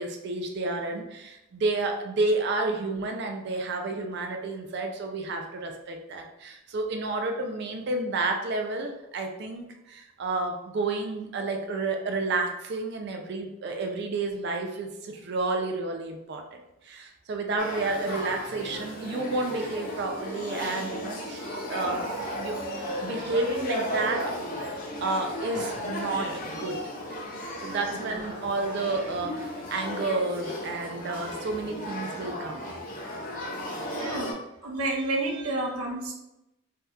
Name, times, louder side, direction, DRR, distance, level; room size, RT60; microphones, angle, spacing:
voice 1, 0.0-16.4 16.8-22.0 22.3-22.6 23.0-24.3 24.6-26.8 27.6-32.7, right 3 dB, 50° right, 3 dB, 0.3 m, -31 dB
Male speech man speaking / Child speech kid speaking / Conversation, 17.6-34.3, equal, 40° left, 0.6 m, -35 dB
voice 2, 33.9-34.4 34.6-36.1, right 2 dB, 80° right, -1 dB, 0.7 m, -30 dB
2.7 x 2.2 x 3.5 m, 0.90 s
head